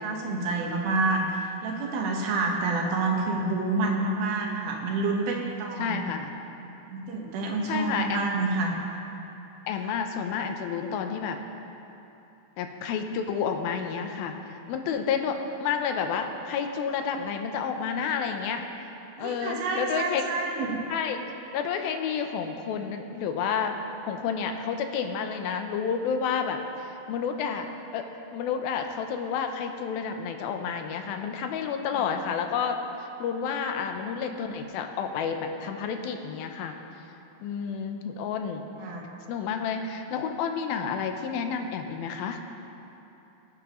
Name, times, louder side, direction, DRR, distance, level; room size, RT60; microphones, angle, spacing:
voice 1, 0.0-6.0 6.9-8.8 9.8-9.9 19.2-20.8 38.8-39.1, right 3 dB, 80° right, 0 dB, 3.1 m, -28 dB
voice 2, 5.8-6.3 7.7-8.2 9.7-11.4 12.6-18.7 19.2-20.2 20.9-21.2 21.5-23.8 24.1-27.7 27.9-36.8 37.4-38.7 39.3-42.4, left 6 dB, 80° left, 5 dB, 2.6 m, -30 dB
21.5 x 9.2 x 3.1 m, 2.9 s
omnidirectional pair, 4.3 m